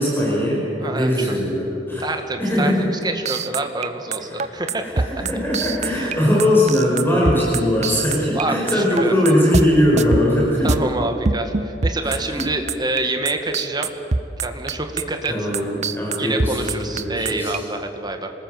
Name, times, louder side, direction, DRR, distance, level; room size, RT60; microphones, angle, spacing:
voice 1, 0.0-2.0 2.4-2.9 4.2-10.7 12.0-12.5 15.3-17.6, left 1 dB, 10° left, -5 dB, 5.3 m, -20 dB
voice 2, 0.8-1.4 2.0-4.8 5.9-6.1 8.3-9.1 10.6-13.9 14.4-15.5 16.2-18.3, right 2 dB, 25° right, 5 dB, 2.0 m, -27 dB
sound 1, 3.3-8.4 8.7-9.7 10.0-10.9 11.3-13.0 13.3-17.6, right 4 dB, 40° right, 0.8 m, -23 dB
26.5 x 19.0 x 8.0 m, 2.9 s
head